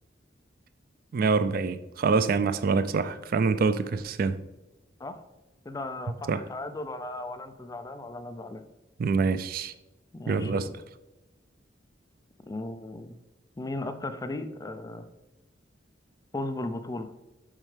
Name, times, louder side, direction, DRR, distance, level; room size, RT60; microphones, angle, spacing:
voice 1, 1.1-4.4 6.3-6.4 9.0-9.7 10.3-10.7, right 4 dB, 50° right, 0.3 m, -25 dB
voice 2, 5.7-8.6 10.1-10.7 12.5-13.1 13.6-15.0 16.3-17.1, left 2 dB, 20° left, 0.4 m, -36 dB
7.3 x 5.4 x 3.3 m
head